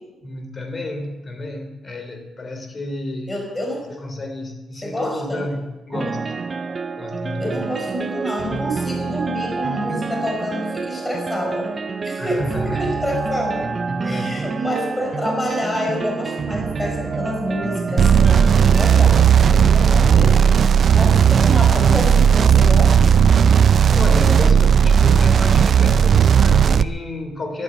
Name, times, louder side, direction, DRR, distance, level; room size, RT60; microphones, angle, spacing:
voice 1, 0.2-3.4 3.9-6.4 7.0-7.7 12.2-12.9 14.0-14.5 19.9-20.3 23.9-27.6, left 1 dB, 35° left, 6 dB, 3.6 m, -30 dB
voice 2, 3.3-3.9 4.8-5.4 7.4-11.7 12.0-13.7 14.0-20.6 20.9-23.2, equal, 15° left, 0 dB, 5.2 m, -27 dB
sound 1, 5.9-19.3, right 4 dB, 35° right, 0.9 m, -27 dB
sound 2, 18.0-26.8, right 7 dB, 55° right, 0.5 m, -14 dB
12.0 x 11.5 x 9.8 m, 1.1 s
cardioid pair, 90°, 0 cm